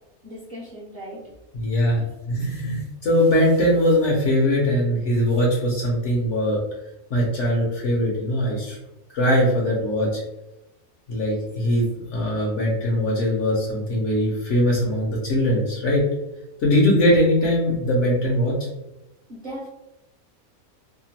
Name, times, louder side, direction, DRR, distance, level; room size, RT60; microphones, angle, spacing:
voice 1, 0.2-1.3 19.3-19.7, equal, 45° right, -7 dB, 0.7 m, -37 dB
voice 2, 1.5-6.6 7.1-8.8 9.1-10.2 11.1-16.0 16.6-18.6, equal, 65° left, -3 dB, 0.9 m, -21 dB
2.9 x 2.1 x 2.8 m, 0.94 s
omnidirectional pair, 1.5 m